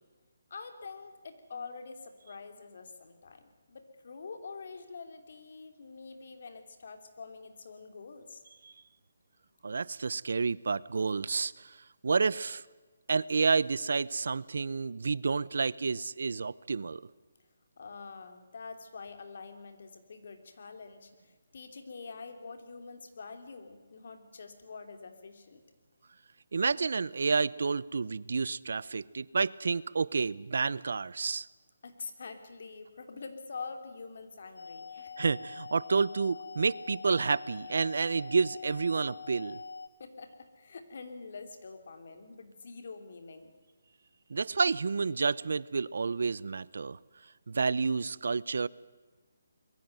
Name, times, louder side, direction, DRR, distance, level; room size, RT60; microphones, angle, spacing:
voice 1, 0.5-3.4 3.7-8.4 17.8-25.6 31.8-35.1 40.0-43.5, left 4 dB, 55° left, 7 dB, 3.1 m, -46 dB
voice 2, 9.6-11.8 12.0-12.6 13.1-17.0 26.5-31.5 35.2-39.6 44.3-47.0 47.5-48.7, right 4 dB, 70° right, 22 dB, 0.6 m, -30 dB
sound 1, 34.6-39.9, left 5 dB, 90° left, 1.8 m, -44 dB
22.0 x 15.5 x 9.1 m, 1.3 s
hypercardioid pair, 165°, 0 cm